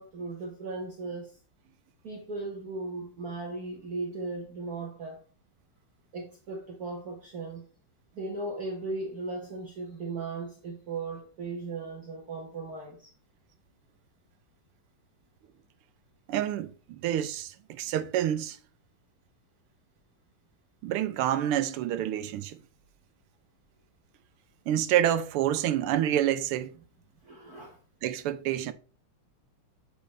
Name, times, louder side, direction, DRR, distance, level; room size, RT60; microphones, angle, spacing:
voice 1, 0.0-1.4 2.0-5.2 6.1-7.6 8.1-13.1 27.2-27.8, right 3 dB, 50° right, 1.6 m, -37 dB
voice 2, 16.3-18.6 20.8-22.6 24.7-26.8 28.0-28.7, right 11 dB, 85° right, 1.6 m, -28 dB
7.9 x 6.7 x 3.3 m
omnidirectional pair, 2.4 m